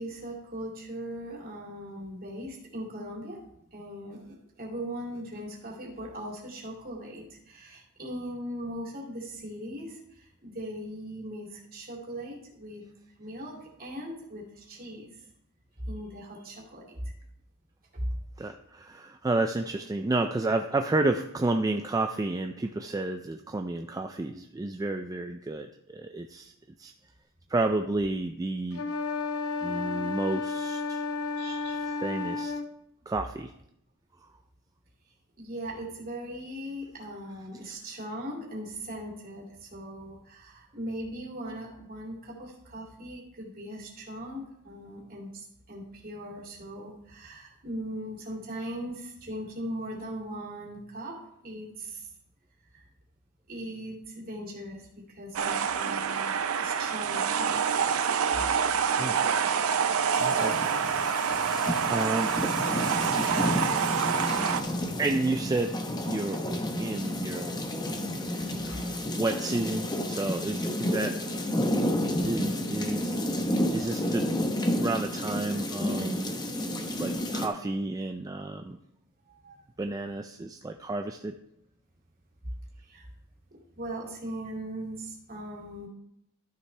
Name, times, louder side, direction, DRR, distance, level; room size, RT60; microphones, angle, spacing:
voice 1, 0.0-3.4 3.7-12.8 13.2-15.1 15.9-17.1 17.9-18.1 31.4-31.8 35.4-52.0 52.7-52.8 53.5-57.8 61.4-61.5 77.3-77.5 79.3-79.6 82.8-83.1 83.5-85.9, right 1 dB, 45° right, -2 dB, 2.5 m, -39 dB
voice 2, 18.4-26.5 26.8-26.9 27.5-28.8 29.6-31.0 31.9-32.6 33.1-33.5 59.0-59.2 60.2-61.3 61.9-62.4 65.0-65.8 66.0-67.6 68.7-71.2 72.2-73.3 73.7-74.3 74.7-76.3 77.0-78.8 79.8-81.4, right 2 dB, 15° right, 6 dB, 0.3 m, -31 dB
sound 1, 28.7-32.7, left 4 dB, 85° left, 0.7 m, -32 dB
sound 2, 55.4-64.6, right 6 dB, 75° right, 0.5 m, -27 dB
sound 3, 60.1-77.5, left 1 dB, 20° left, 0.8 m, -31 dB
12.5 x 6.5 x 3.3 m, 0.78 s
head